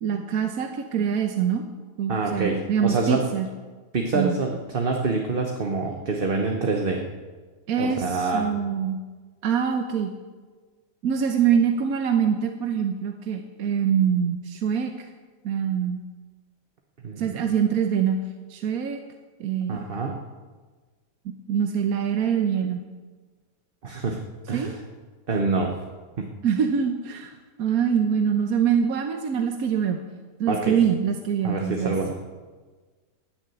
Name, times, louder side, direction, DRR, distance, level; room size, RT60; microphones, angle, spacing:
voice 1, 0.0-1.6 2.0-3.4 4.1-4.4 7.7-9.0 9.4-10.1 11.0-14.9 15.4-16.0 17.2-18.2 18.5-19.0 19.4-19.8 21.2-22.8 24.5-24.7 26.4-30.0 30.4-32.0, right 7 dB, 60° right, 5 dB, 1.3 m, -24 dB
voice 2, 2.1-3.2 3.9-7.0 7.8-8.4 17.0-17.3 19.7-20.2 23.8-24.2 24.5-24.8 25.3-25.8 26.2-26.3 30.5-30.8 31.4-32.2, right 3 dB, 35° right, 2 dB, 1.2 m, -26 dB
14.0 x 7.3 x 9.2 m, 1.4 s
omnidirectional pair, 1.8 m